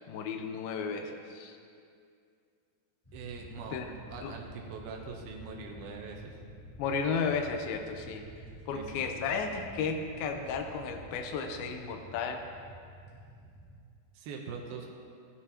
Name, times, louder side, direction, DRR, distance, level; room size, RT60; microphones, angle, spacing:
voice 1, 0.1-1.6 3.7-3.9 4.2-4.3 6.8-8.3 8.7-12.4, left 5 dB, 90° left, 4 dB, 2.6 m, -33 dB
sound 1, 3.0-13.8, right 1 dB, 15° left, 1.1 m, -49 dB
voice 2, 3.1-6.3 8.7-9.1 14.1-14.9, right 4 dB, 90° right, 0 dB, 2.8 m, -43 dB
14.0 x 11.0 x 2.9 m, 2.3 s
omnidirectional pair, 4.2 m